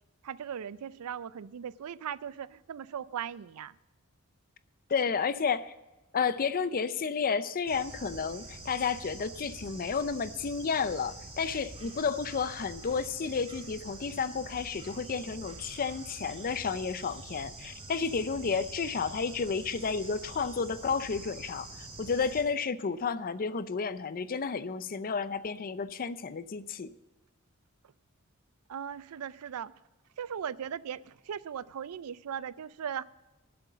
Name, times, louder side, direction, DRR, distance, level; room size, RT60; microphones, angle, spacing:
voice 1, 0.2-3.7 28.7-29.7 30.2-33.0, right 8 dB, 90° right, 19 dB, 0.4 m, -38 dB
voice 2, 4.9-5.7 6.1-26.9, left 5 dB, 40° left, 14 dB, 0.5 m, -31 dB
Bird / Insect, 7.7-22.4, right 2 dB, 25° right, 2.9 m, -46 dB
10.5 x 7.8 x 7.3 m, 1.1 s
head